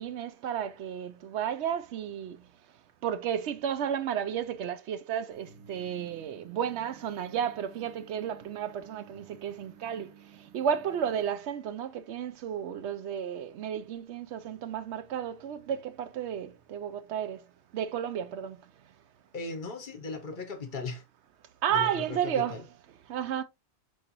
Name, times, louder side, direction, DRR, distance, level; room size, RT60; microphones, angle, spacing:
voice 1, 0.0-2.5 3.0-17.4 17.7-18.6 21.6-22.6 23.1-23.4, right 9 dB, 75° right, 0.8 m, -32 dB
sound 1, 5.3-11.3, right 8 dB, 25° right, 1.1 m, -54 dB
voice 2, 19.3-21.0 21.7-22.6, left 4 dB, 50° left, 0.9 m, -37 dB
4.6 x 4.4 x 2.5 m
omnidirectional pair, 1.2 m